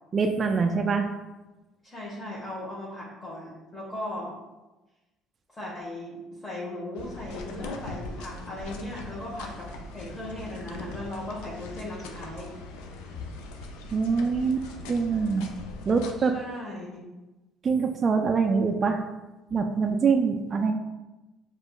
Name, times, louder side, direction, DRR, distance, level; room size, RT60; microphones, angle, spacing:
voice 1, 0.1-1.1 13.9-15.5 15.9-16.3 17.6-19.0 19.5-20.7, right 5 dB, 40° right, 4 dB, 0.3 m, -24 dB
voice 2, 1.8-4.3 5.5-12.6 16.2-17.0, left 1 dB, 25° left, -6 dB, 1.1 m, -37 dB
sound 1, 7.0-16.1, left 3 dB, 80° left, 0.4 m, -41 dB
5.0 x 2.4 x 2.2 m, 1.1 s
supercardioid pair, 75°, 0 cm